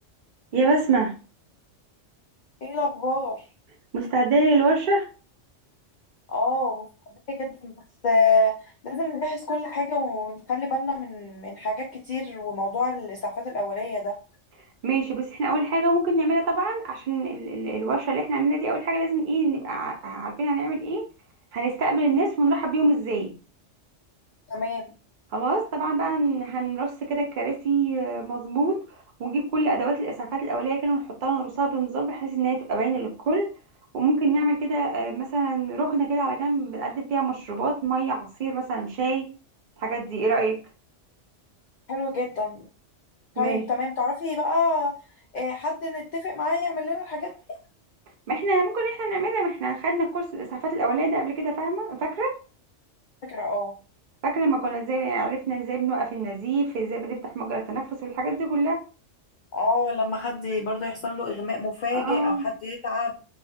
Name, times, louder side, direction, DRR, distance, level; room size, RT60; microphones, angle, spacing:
voice 1, 0.5-1.1 3.9-5.1 14.8-21.1 21.5-23.3 25.3-28.8 29.2-33.5 33.9-39.3 39.8-40.6 43.4-43.6 48.3-52.4 54.2-58.8 61.9-62.5, right 3 dB, 55° right, 0.5 m, -25 dB
voice 2, 2.6-3.4 6.3-7.7 8.0-14.1 24.5-24.9 41.9-42.7 43.4-44.9 45.3-47.3 53.2-53.7 59.5-63.1, left 3 dB, 65° left, 0.4 m, -27 dB
2.3 x 2.0 x 2.6 m
omnidirectional pair, 1.3 m